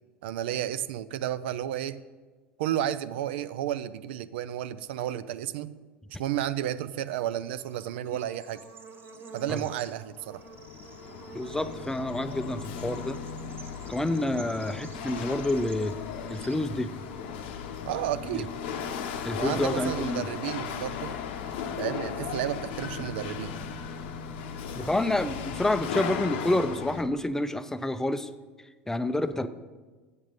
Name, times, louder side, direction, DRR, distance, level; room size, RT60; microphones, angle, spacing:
voice 1, 0.2-2.0 2.6-5.7 6.2-8.6 9.3-10.4 17.8-18.5 19.4-21.2 21.8-23.5, right 12 dB, 65° right, 14 dB, 0.3 m, -32 dB
Bird / Insect, 7.1-17.7, right 4 dB, 35° right, 1.5 m, -50 dB
Chatter / Hiss / Rattle, 10.1-27.0, left 6 dB, 65° left, 0.7 m, -36 dB
voice 2, 11.3-13.2 13.9-15.9 16.3-16.9 18.3-18.4 19.2-20.2 24.8-28.3 28.9-29.5, left 1 dB, 5° left, 12 dB, 0.4 m, -28 dB
8.2 x 7.3 x 5.1 m, 1.4 s
figure-of-eight pair, 75°, 6 cm